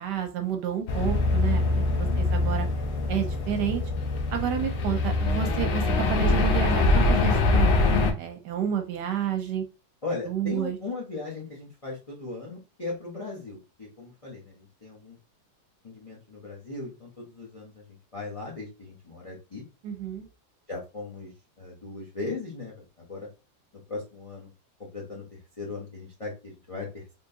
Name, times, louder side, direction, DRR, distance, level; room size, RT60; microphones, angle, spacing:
voice 1, 0.0-2.7 3.1-3.8 4.3-9.6 10.3-10.8 19.8-20.3, right 8 dB, 70° right, 6 dB, 1.1 m, -30 dB
sound 1, 0.9-8.1, left 2 dB, 70° left, 0.8 m, -24 dB
voice 2, 10.0-15.2 15.8-19.6 20.7-22.8 23.1-23.3 23.7-24.5 24.9-25.3 25.6-27.1, left 3 dB, 50° left, -2 dB, 0.4 m, -38 dB
3.6 x 2.9 x 2.7 m, 0.30 s
omnidirectional pair, 2.1 m